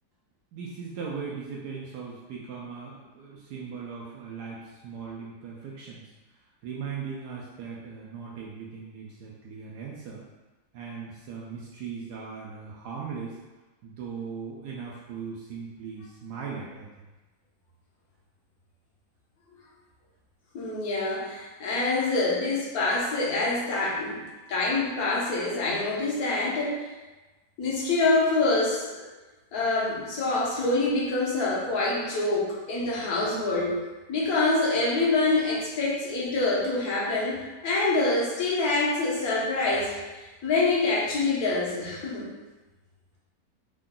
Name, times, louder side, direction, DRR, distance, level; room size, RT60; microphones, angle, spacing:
voice 1, 0.5-6.0 6.6-10.2 10.7-13.4 13.8-16.9, right 5 dB, 75° right, -4 dB, 1.1 m, -38 dB
voice 2, 20.5-24.2 24.5-26.9 27.6-29.1 29.5-33.7 34.1-39.9 40.4-42.3, left 3 dB, 65° left, -5 dB, 1.3 m, -26 dB
3.6 x 2.3 x 3.7 m, 1.2 s
omnidirectional pair, 1.8 m